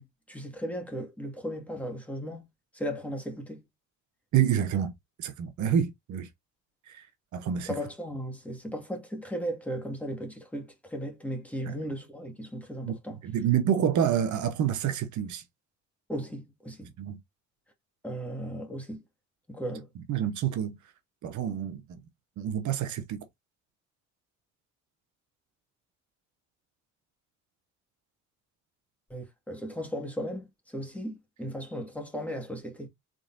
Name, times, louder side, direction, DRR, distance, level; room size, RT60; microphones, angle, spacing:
voice 1, 0.0-2.5 2.7-3.6 7.7-13.2 16.1-16.9 18.0-19.0 19.5-19.9 29.1-32.9, equal, 5° left, 1.8 m, -36 dB
voice 2, 4.3-4.9 5.2-6.3 6.9-7.0 7.3-7.7 11.7-11.8 12.8-15.4 17.0-17.2 20.1-20.8 21.2-22.0 22.4-23.3, right 9 dB, 70° right, 0.9 m, -28 dB
3.9 x 3.8 x 2.5 m
cardioid pair, 90°, 30 cm